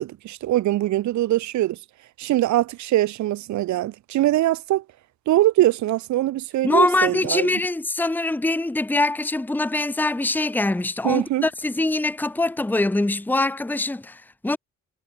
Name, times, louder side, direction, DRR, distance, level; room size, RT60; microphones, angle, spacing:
voice 1, 0.0-1.8 2.2-4.8 5.3-7.5 11.0-11.5, right 15 dB, 70° right, 0.8 m, -22 dB
voice 2, 6.6-14.6, left 2 dB, 5° left, 1.0 m, -23 dB
cardioid pair, 90°, 30 cm